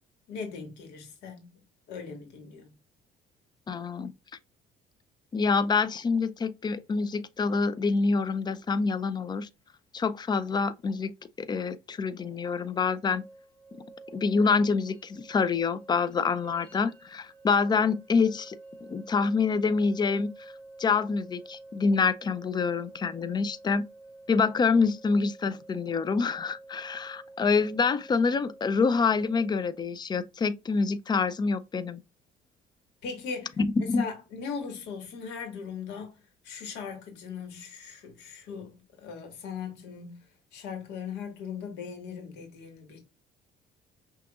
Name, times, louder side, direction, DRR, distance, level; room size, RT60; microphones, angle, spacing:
voice 1, 0.3-1.5 1.9-2.7 33.0-33.5 33.8-36.2 36.4-40.2 40.5-43.0, left 6 dB, 90° left, 1.7 m, -39 dB
voice 2, 3.7-4.1 5.3-9.5 9.9-11.1 11.4-13.2 14.1-18.6 18.9-20.3 20.8-23.8 24.3-32.0 33.6-34.0, left 4 dB, 25° left, 0.4 m, -26 dB
sound 1, 13.1-29.8, right 2 dB, 10° left, 1.4 m, -50 dB
5.9 x 2.9 x 2.4 m
cardioid pair, 110°, 17 cm